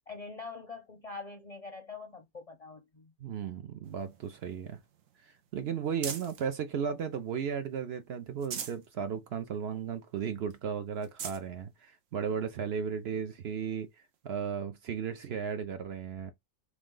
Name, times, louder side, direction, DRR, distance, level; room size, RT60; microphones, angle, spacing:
voice 1, 0.0-3.1, left 4 dB, 45° left, 0.5 m, -44 dB
voice 2, 3.2-4.8 5.2-13.9 14.2-16.3, right 7 dB, 65° right, 0.7 m, -35 dB
sound 1, 3.8-6.5 7.0-7.8 8.2-8.9 9.3-9.4 9.8-9.9 10.5-10.6 11.0-11.5 12.3-12.4 14.1-14.2, right 7 dB, 80° right, 1.1 m, -43 dB
3.2 x 3.1 x 3.7 m
omnidirectional pair, 1.3 m